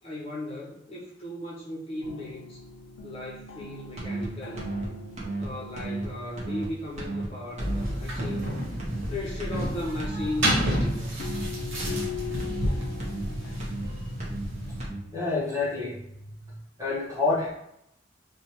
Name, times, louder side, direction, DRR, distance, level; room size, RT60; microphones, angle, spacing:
voice 1, 0.0-2.6 3.0-4.6 5.4-8.5 9.1-11.3, left 1 dB, 30° left, -5 dB, 0.5 m, -36 dB
sound 1, 2.0-10.3 11.2-15.6, left 5 dB, 85° left, 0.5 m, -42 dB
sound 2, 4.0-4.3 4.6-4.9 5.2-5.5 5.8-6.1 6.4-6.7 7.0-7.3 7.6-7.9 8.2-8.5 8.8-9.1 9.4-9.7 10.0-10.3 10.6-10.9 11.2-11.5 11.8-12.1 12.4-12.7 13.0-13.3 13.6-13.9 14.2-14.5 14.8-15.0, right 2 dB, 35° right, 0.7 m, -34 dB
sound 3, 7.6-14.8, equal, 85° right, 1.0 m, -30 dB
voice 2, 15.1-16.3 16.8-17.5, left 3 dB, 15° right, -7 dB, 1.0 m, -28 dB
3.0 x 2.0 x 2.9 m, 0.79 s
head